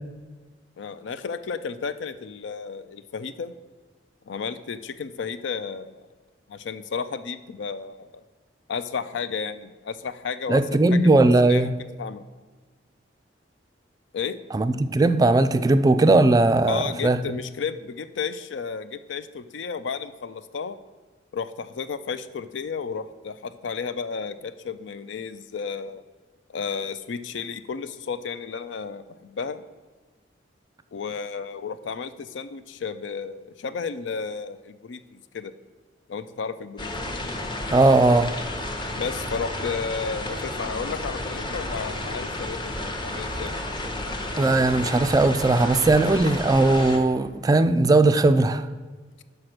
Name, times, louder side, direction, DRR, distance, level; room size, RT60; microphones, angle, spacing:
voice 1, 0.8-3.5 4.3-6.1 6.5-8.2 8.7-10.6 10.9-11.2 11.5-11.7 12.0-12.2 14.1-14.4 16.7-20.8 21.3-26.0 26.5-29.6 30.9-35.5 36.1-36.9 39.0-43.6, left 5 dB, 80° left, 0.4 m, -33 dB
voice 2, 10.5-11.7 14.5-17.2 37.7-38.3 44.4-48.7, right 2 dB, 20° right, 0.3 m, -18 dB
sound 1, 36.8-47.0, left 1 dB, 25° left, 0.8 m, -32 dB
6.4 x 5.3 x 5.9 m
head